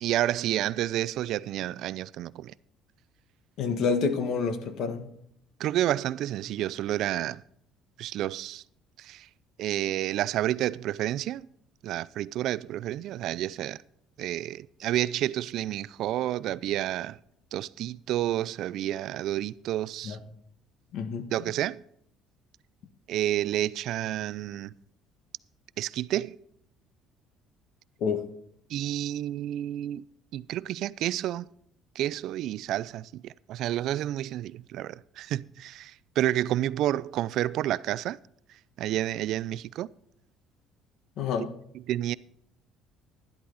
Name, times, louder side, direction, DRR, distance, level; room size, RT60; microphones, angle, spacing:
voice 1, 0.0-2.5 5.6-7.4 8.0-8.6 9.0-9.3 9.6-11.5 11.8-13.8 14.2-17.2 17.5-20.2 21.3-21.8 23.1-24.7 25.8-26.4 28.7-30.0 30.3-31.5 32.0-38.2 38.8-39.9 41.9-42.1, right 13 dB, 60° right, 0.4 m, -30 dB
voice 2, 3.6-5.1 20.0-20.2 20.9-21.3 28.0-28.2 41.2-41.5, left 5 dB, 60° left, 1.4 m, -28 dB
11.5 x 11.5 x 4.0 m
cardioid pair, 145°, 0 cm